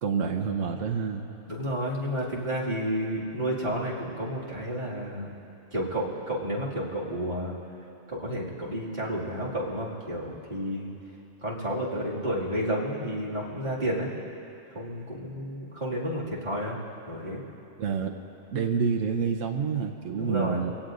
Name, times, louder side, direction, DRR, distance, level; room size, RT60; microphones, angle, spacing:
voice 1, 0.0-1.3 17.8-18.2 18.5-20.7, right 6 dB, 85° right, 2 dB, 1.2 m, -28 dB
voice 2, 1.5-5.3 5.7-7.5 8.1-10.9 11.4-14.1 14.7-16.8 17.1-17.4 20.2-20.6, equal, 35° right, -6 dB, 2.4 m, -31 dB
24.0 x 17.0 x 2.6 m, 2.8 s
omnidirectional pair, 1.3 m